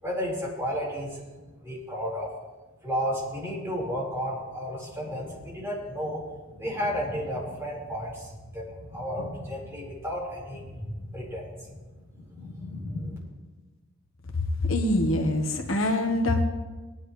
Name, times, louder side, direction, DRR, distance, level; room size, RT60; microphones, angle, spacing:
voice 1, 0.0-2.3 2.8-13.2, equal, 10° right, -6 dB, 4.6 m, -33 dB
voice 2, 14.6-16.4, left 1 dB, 85° left, 3 dB, 1.4 m, -24 dB
20.5 x 10.5 x 3.3 m, 1.3 s
head